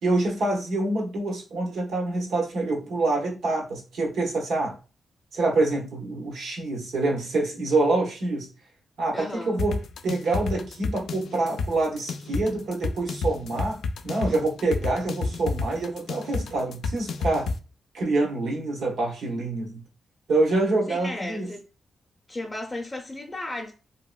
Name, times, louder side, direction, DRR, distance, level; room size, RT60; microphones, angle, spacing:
voice 1, 0.0-4.8 5.3-8.5 9.0-13.8 14.0-17.5 17.9-19.8 20.3-21.5, right 2 dB, 90° right, 1.0 m, -26 dB
voice 2, 9.1-9.6 20.9-21.7 22.3-23.7, left 2 dB, 25° left, 0.5 m, -35 dB
sound 1, 9.6-17.6, left 4 dB, 90° left, 0.3 m, -30 dB
3.0 x 2.8 x 2.3 m
cardioid pair, 110°, 0 cm